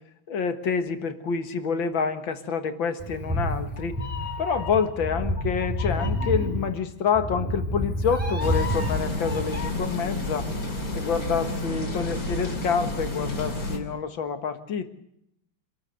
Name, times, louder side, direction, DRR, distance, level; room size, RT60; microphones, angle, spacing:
voice 1, 0.3-4.0 4.4-10.5 10.9-14.9, left 6 dB, 70° left, 9 dB, 2.3 m, -27 dB
Meow, 3.0-9.7, left 1 dB, 5° right, 4.5 m, -29 dB
sound 1, 8.4-13.8, left 2 dB, 45° left, 3.5 m, -30 dB
26.5 x 13.5 x 8.1 m, 0.75 s
omnidirectional pair, 2.2 m